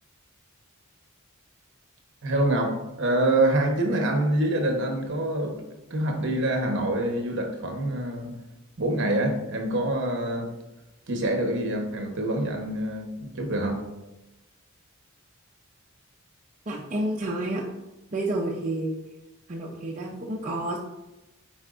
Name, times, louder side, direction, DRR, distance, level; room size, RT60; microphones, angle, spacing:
voice 1, 2.2-5.6 5.9-8.3 8.8-10.5 11.1-13.8, right 1 dB, 55° right, 3 dB, 1.1 m, -26 dB
voice 2, 16.7-17.6 18.1-19.0 19.5-20.8, right 1 dB, 35° right, -3 dB, 0.6 m, -29 dB
8.9 x 4.4 x 2.5 m, 1.0 s
head